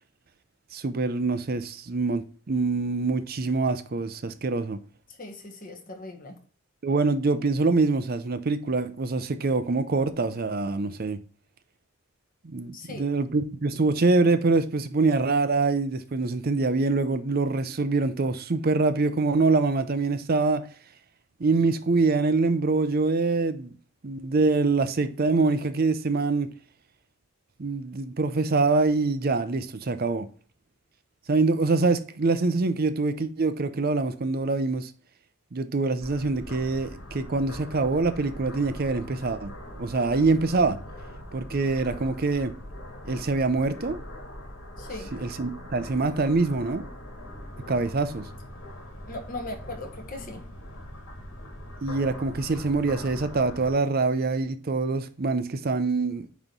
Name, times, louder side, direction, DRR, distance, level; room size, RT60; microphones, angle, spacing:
voice 1, 0.7-4.8 6.8-11.2 12.4-20.7 21.4-23.8 24.0-26.5 27.6-30.3 31.3-34.9 35.5-40.8 41.3-42.5 43.1-44.0 45.1-46.9 47.7-48.3 51.8-56.3, right 3 dB, 45° right, 0.6 m, -25 dB
voice 2, 5.2-6.4 12.7-13.0 44.8-45.1 49.1-50.4, left 2 dB, 40° left, 1.4 m, -38 dB
sound 1, 36.0-53.7, equal, 75° left, 2.6 m, -42 dB
9.0 x 3.1 x 3.9 m
head